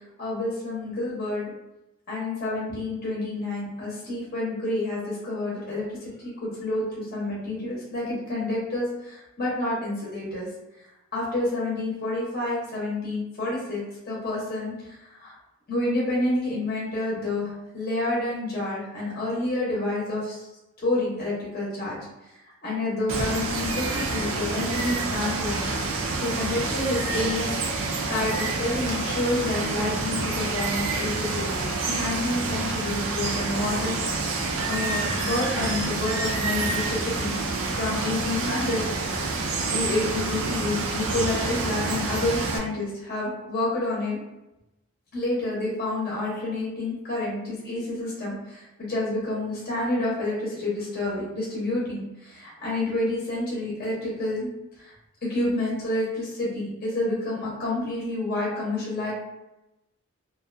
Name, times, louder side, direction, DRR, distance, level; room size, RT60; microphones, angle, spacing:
voice 1, 0.2-1.5 2.1-10.5 11.1-15.3 15.7-20.5 20.8-22.0 22.6-25.7 26.2-37.4 37.7-38.9 39.7-44.2 45.1-54.5 54.8-54.9 55.3-59.1, left 2 dB, 45° left, -6 dB, 0.7 m, -29 dB
Water, 23.1-42.6, right 3 dB, 60° right, 0.4 m, -28 dB
2.4 x 2.2 x 2.5 m, 0.93 s
head